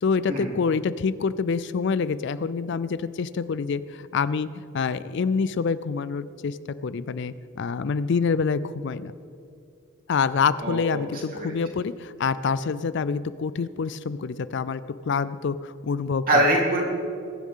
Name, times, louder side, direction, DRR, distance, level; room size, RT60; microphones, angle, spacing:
voice 1, 0.0-6.6 6.8-9.1 10.1-16.4, left 5 dB, 55° left, 15 dB, 0.4 m, -26 dB
voice 2, 10.6-11.0 11.4-11.5 16.3-16.8, right 1 dB, 40° right, -3 dB, 3.3 m, -22 dB
21.5 x 10.5 x 3.7 m, 2.5 s
head